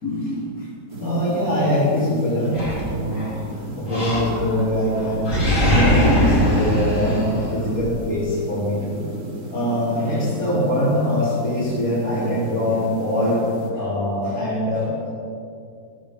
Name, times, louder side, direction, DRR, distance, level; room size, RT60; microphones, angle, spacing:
voice 1, 0.0-0.7 1.0-3.2 3.7-5.3 5.6-9.0 9.5-13.4 13.7-15.1, left 1 dB, 55° left, -11 dB, 4.1 m, -23 dB
sound 1, 0.9-13.7, right 1 dB, 60° right, 2.5 m, -34 dB
Animal, 2.5-3.4 3.9-4.7 4.9-7.9, equal, 75° left, 4.7 m, -20 dB
16.5 x 14.5 x 3.8 m, 2.4 s
omnidirectional pair, 1.8 m